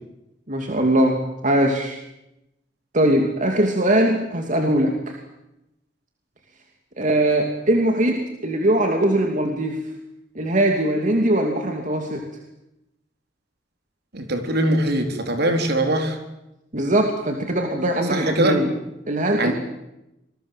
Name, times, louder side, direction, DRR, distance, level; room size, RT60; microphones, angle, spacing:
voice 1, 0.5-2.0 2.9-5.2 7.0-9.8 10.3-12.2 16.7-18.7 19.1-19.5, right 1 dB, 45° right, 2 dB, 2.7 m, -21 dB
voice 2, 14.1-16.2 18.1-18.6 19.4-19.5, right 1 dB, 60° right, 5 dB, 4.2 m, -21 dB
26.5 x 21.0 x 7.5 m, 0.88 s
head